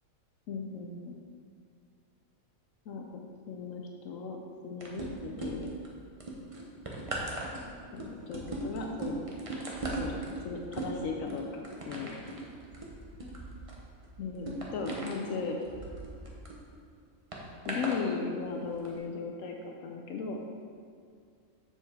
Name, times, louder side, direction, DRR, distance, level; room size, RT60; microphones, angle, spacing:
voice 1, 0.5-1.1 2.9-3.1 3.5-4.4 4.6-5.7 7.9-9.2 10.0-10.2 10.4-11.4 11.9-12.2 14.2-15.6 17.7-20.4, left 5 dB, 75° left, 2 dB, 1.0 m, -36 dB
sound 1, 4.8-5.9 6.2-16.6 17.3-18.0 18.7-18.9, right 2 dB, 30° right, 0.9 m, -38 dB
7.2 x 6.9 x 3.5 m, 2.2 s
omnidirectional pair, 1.4 m